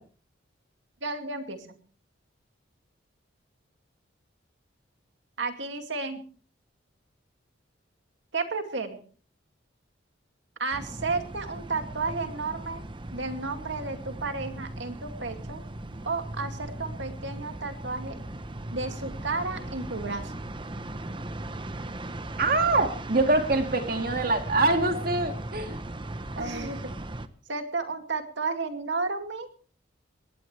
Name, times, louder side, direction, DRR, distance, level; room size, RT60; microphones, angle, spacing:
voice 1, 1.0-1.7 5.4-6.2 8.3-9.0 10.6-12.8 13.1-15.6 16.0-18.2 18.7-20.3 26.4-26.9 27.5-29.5, right 3 dB, 70° right, 6 dB, 2.4 m, -32 dB
sound 1, 10.7-27.3, right 1 dB, 25° right, 0.8 m, -38 dB
voice 2, 22.4-25.8 26.4-26.7, right 2 dB, 50° right, 6 dB, 2.2 m, -25 dB
21.5 x 18.0 x 3.3 m, 0.41 s
head